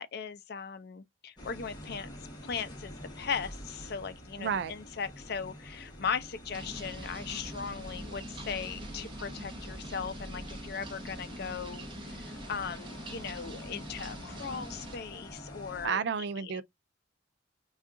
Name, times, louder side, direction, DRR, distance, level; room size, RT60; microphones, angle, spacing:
voice 1, 0.0-2.1 2.4-16.0 16.4-16.6, left 6 dB, 55° left, 0.5 m, -38 dB
sound 1, 1.4-15.9, equal, 20° left, 1.0 m, -47 dB
voice 2, 4.4-4.7 15.8-16.6, right 6 dB, 60° right, 0.3 m, -31 dB
sound 2, 6.5-15.0, right 1 dB, 25° right, 0.7 m, -44 dB
2.7 x 2.3 x 3.6 m
head